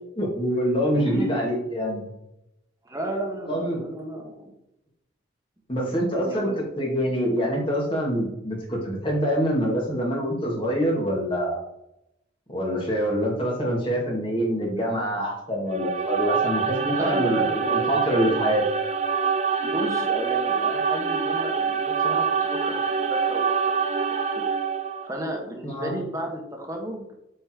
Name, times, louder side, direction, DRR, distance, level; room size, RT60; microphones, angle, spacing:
voice 1, 0.2-2.1 3.5-3.8 5.7-6.5 6.8-11.6 12.5-18.6 25.6-25.9, equal, 25° left, -2 dB, 2.3 m, -25 dB
voice 2, 0.9-1.4 2.8-4.5 5.9-6.6 16.9-18.2 19.6-24.4 25.0-27.1, right 1 dB, 15° right, 1 dB, 1.4 m, -33 dB
sound 1, 15.7-25.2, right 5 dB, 35° right, 0.5 m, -25 dB
8.1 x 4.4 x 4.7 m, 0.83 s
head